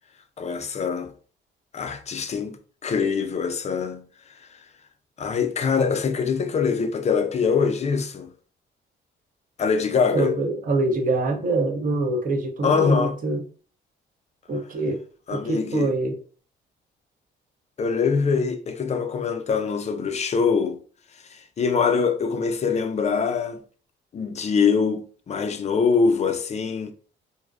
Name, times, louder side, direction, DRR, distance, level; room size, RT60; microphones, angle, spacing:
voice 1, 0.4-1.1 1.7-4.6 5.2-8.3 9.6-10.4 12.6-13.1 15.3-15.9 17.8-20.8 21.2-23.6 24.1-26.9, left 5 dB, 35° left, 0.4 m, -24 dB
voice 2, 10.1-13.4 14.5-15.0 15.3-16.2, right 2 dB, 45° right, 0.6 m, -24 dB
2.5 x 2.0 x 2.4 m
cardioid pair, 90°, 20 cm